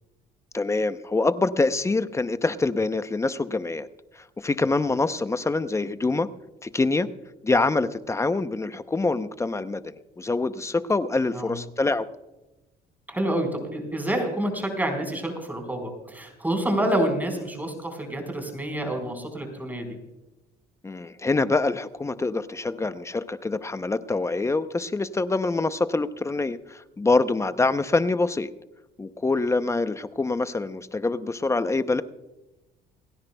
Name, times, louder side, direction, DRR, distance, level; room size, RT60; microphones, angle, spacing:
voice 1, 0.5-3.9 4.2-6.3 6.6-7.1 7.4-12.1 20.8-28.5 29.0-32.0, left 3 dB, 15° left, 12 dB, 0.7 m, -25 dB
voice 2, 13.1-19.9, right 1 dB, 10° right, 4 dB, 4.3 m, -28 dB
29.0 x 10.5 x 2.2 m, 1.0 s
cardioid pair, 110°, 17 cm